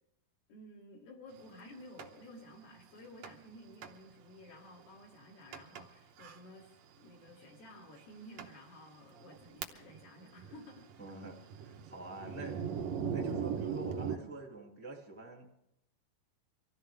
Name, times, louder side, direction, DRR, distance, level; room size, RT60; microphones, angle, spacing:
voice 1, 0.5-10.9, left 1 dB, 75° left, -4 dB, 4.6 m, -53 dB
Thunder, 2.0-2.1 3.2-3.5 3.8-3.9 4.6-4.7 5.5-5.8 6.2-6.4 7.3-7.4 8.0-8.1 8.4-8.5 9.1-10.1 10.3-14.2, right 7 dB, 90° right, 1.5 m, -39 dB
voice 2, 11.0-12.6 13.1-15.6, right 2 dB, 5° left, 0 dB, 0.9 m, -46 dB
25.0 x 14.5 x 3.5 m, 0.81 s
omnidirectional pair, 4.5 m